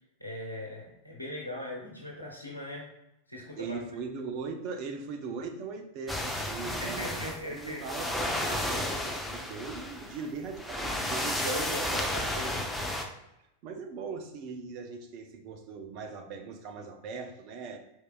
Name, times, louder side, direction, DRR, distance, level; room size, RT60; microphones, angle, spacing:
voice 1, 0.2-2.9 3.3-3.8 6.6-7.8 11.4-12.7, equal, 90° left, -2 dB, 1.0 m, -39 dB
voice 2, 3.6-12.1 13.6-17.8, right 4 dB, 40° right, 4 dB, 0.7 m, -39 dB
sound 1, 6.1-13.0, left 1 dB, 5° left, 0.6 m, -33 dB
4.8 x 4.5 x 2.4 m, 0.88 s
figure-of-eight pair, 90°, 0 cm